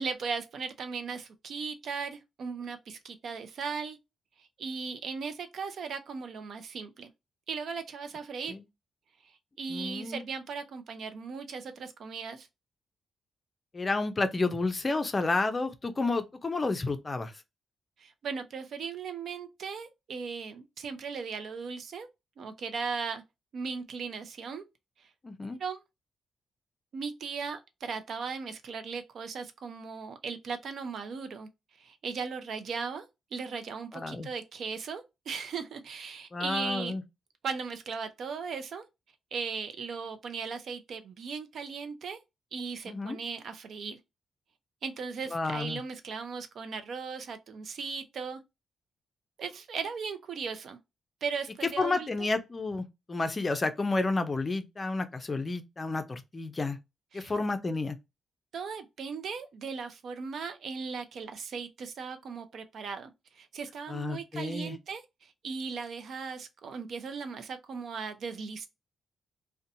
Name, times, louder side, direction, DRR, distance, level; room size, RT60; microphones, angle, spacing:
voice 1, 0.0-4.0 4.4-7.1 7.5-8.5 9.6-12.5 18.0-22.1 22.4-23.2 23.5-24.6 25.4-25.8 26.9-31.5 31.8-33.1 33.3-37.0 37.4-38.8 39.3-42.2 42.5-44.0 44.8-48.4 49.4-50.8 51.2-52.1 57.1-57.3 58.5-68.7, right 5 dB, 65° right, 0.5 m, -37 dB
voice 2, 9.7-10.2 13.7-17.3 25.2-25.6 33.9-34.3 36.3-37.0 42.9-43.2 45.3-45.8 51.8-56.8 57.1-58.0 63.9-64.8, left 3 dB, 25° left, 0.4 m, -31 dB
2.7 x 2.1 x 2.6 m
cardioid pair, 115°, 0 cm